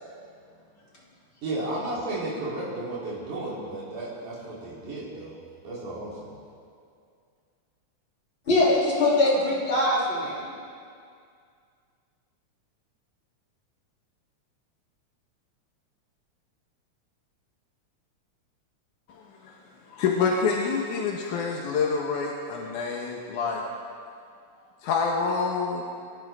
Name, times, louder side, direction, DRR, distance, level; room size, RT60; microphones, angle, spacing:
voice 1, 1.4-6.4, right 2 dB, 90° right, -8 dB, 5.2 m, -34 dB
voice 2, 8.5-10.5, left 2 dB, 40° left, -7 dB, 4.0 m, -22 dB
voice 3, 19.9-23.6 24.8-25.9, left 5 dB, 85° left, -1 dB, 2.8 m, -27 dB
29.0 x 12.5 x 3.7 m, 2.2 s
omnidirectional pair, 3.5 m